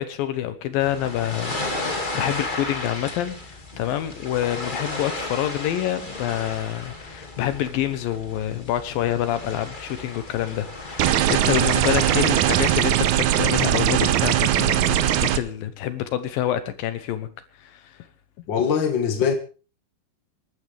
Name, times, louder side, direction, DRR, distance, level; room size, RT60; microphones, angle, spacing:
voice 1, 0.0-17.3 17.6-18.0 18.4-18.5, left 12 dB, 75° left, 2.6 m, -27 dB
sound 1, 0.8-15.1, left 2 dB, 20° left, 1.4 m, -35 dB
sound 2, 11.0-15.4, right 12 dB, 75° right, 1.8 m, -20 dB
voice 2, 18.5-19.3, left 7 dB, 45° left, 1.6 m, -22 dB
27.0 x 12.0 x 3.4 m
omnidirectional pair, 4.4 m